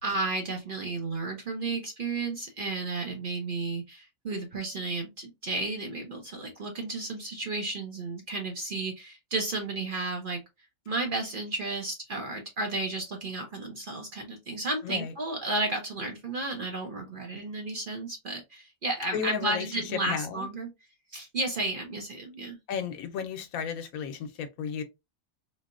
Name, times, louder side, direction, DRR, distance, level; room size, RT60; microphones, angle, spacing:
voice 1, 0.0-10.4 10.9-20.7 21.1-22.6, right 2 dB, 50° right, 0.7 m, -33 dB
voice 2, 14.8-15.1 19.1-20.5 22.7-24.8, left 7 dB, 80° left, 1.1 m, -34 dB
3.9 x 2.0 x 2.4 m
omnidirectional pair, 1.4 m